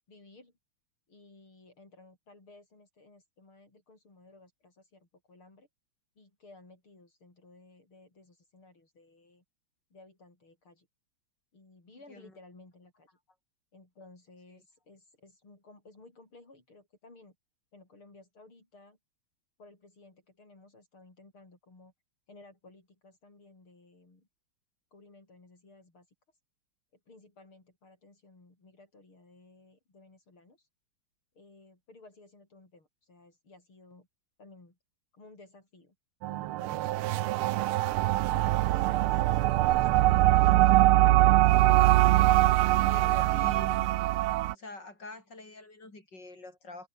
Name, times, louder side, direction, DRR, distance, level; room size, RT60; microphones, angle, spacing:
voice 1, 0.1-0.5 1.1-5.7 6.2-9.4 9.9-10.9 11.5-13.2 13.7-17.4 17.7-19.0 19.6-21.9 22.3-24.3 24.9-26.1 27.1-30.7 31.3-34.1 34.4-34.8 35.1-36.0 36.3-37.8 38.3-40.1, left 2 dB, 70° left, 7.7 m, -56 dB
sound 1, 36.2-44.5, right 16 dB, 80° right, 1.5 m, -23 dB
voice 2, 42.7-44.0 44.5-46.9, left 2 dB, 50° left, 8.5 m, -46 dB
omnidirectional pair, 2.4 m